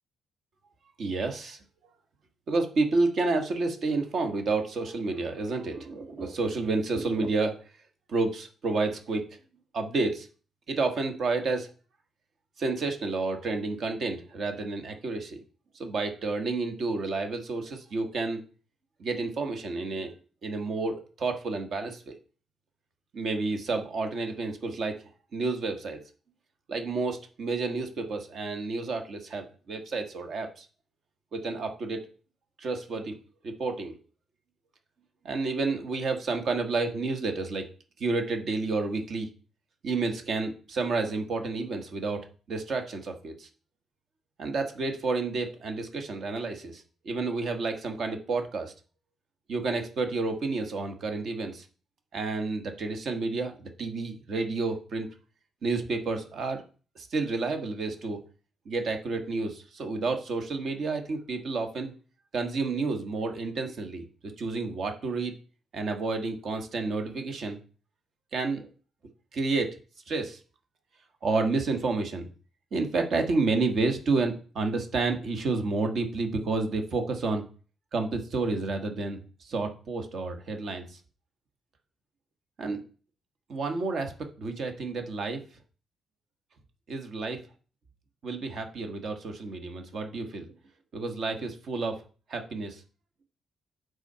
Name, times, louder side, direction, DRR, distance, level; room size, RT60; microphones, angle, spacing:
voice 1, 1.0-1.6 2.5-7.6 8.1-9.4 9.7-10.3 10.7-11.7 12.6-15.4 15.7-18.4 19.0-20.1 20.4-22.2 23.1-25.0 25.3-26.0 26.7-30.6 31.3-32.0 32.6-33.1 33.4-34.0 35.2-37.7 38.0-39.3 39.8-43.5 44.4-48.7 49.5-51.6 52.1-55.1 55.6-56.6 56.9-58.2 58.6-61.9 62.3-64.0 64.4-65.3 65.7-67.6 68.3-68.7 69.3-69.7 70.1-70.4 71.2-72.3 72.7-77.4 77.9-81.0 82.6-82.8 83.5-84.1 84.4-85.4 86.9-87.4 88.2-90.5 90.9-92.0 92.3-92.8, right 3 dB, 50° right, 5 dB, 1.2 m, -30 dB
8.1 x 3.9 x 5.5 m, 0.39 s
cardioid pair, 170°, 0 cm